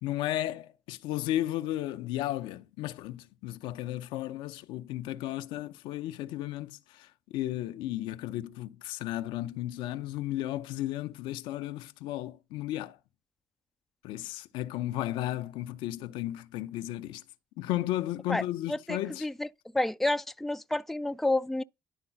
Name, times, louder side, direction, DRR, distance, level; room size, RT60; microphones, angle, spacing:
voice 1, 0.0-7.1 7.3-13.0 14.0-17.2 17.6-19.3, left 14 dB, 70° left, 0.6 m, -34 dB
voice 2, 18.7-19.5 19.7-21.6, left 2 dB, 5° left, 0.4 m, -29 dB
11.0 x 3.8 x 5.6 m
hypercardioid pair, 50°, 9 cm